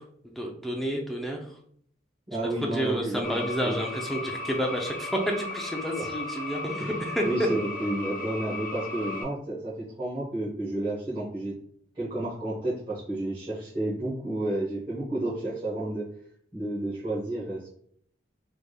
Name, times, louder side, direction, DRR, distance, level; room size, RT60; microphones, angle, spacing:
voice 1, 0.0-1.6 2.6-7.5, equal, ahead, 0 dB, 0.4 m, -30 dB
voice 2, 2.3-3.7 5.9-6.1 6.8-6.9 7.2-11.5 11.9-16.0 16.5-17.7, right 1 dB, 25° right, -11 dB, 1.1 m, -31 dB
sound 1, 3.2-9.2, left 2 dB, 45° left, 0.6 m, -36 dB
3.4 x 3.3 x 2.2 m, 0.63 s
head